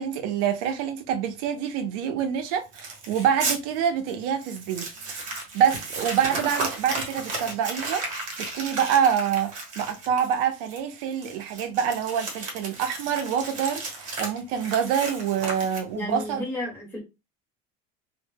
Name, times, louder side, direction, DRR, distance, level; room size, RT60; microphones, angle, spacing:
voice 1, 0.0-4.9 5.5-8.1 8.4-16.5, right 8 dB, 70° right, 0.5 m, -26 dB
Crumpling crinkling, 2.7-3.6 4.1-4.2 4.4-16.1, right 3 dB, 40° right, 1.0 m, -34 dB
voice 2, 15.9-17.0, left 1 dB, 10° left, 1.1 m, -32 dB
2.1 x 2.0 x 3.2 m
cardioid pair, 160°, 19 cm